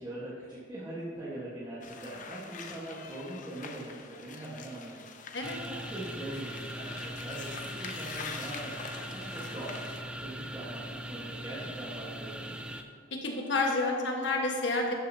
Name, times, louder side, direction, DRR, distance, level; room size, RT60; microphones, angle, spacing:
voice 1, 0.0-4.9 5.2-9.7 10.2-12.5, right 1 dB, 20° right, -9 dB, 1.3 m, -42 dB
sound 1, 1.8-10.0, left 5 dB, 40° left, 0.6 m, -45 dB
sound 2, 5.4-12.8, right 1 dB, 5° right, 0.4 m, -40 dB
voice 2, 13.1-14.9, left 2 dB, 65° left, 1 dB, 1.3 m, -29 dB
12.5 x 6.5 x 2.7 m, 2.3 s
head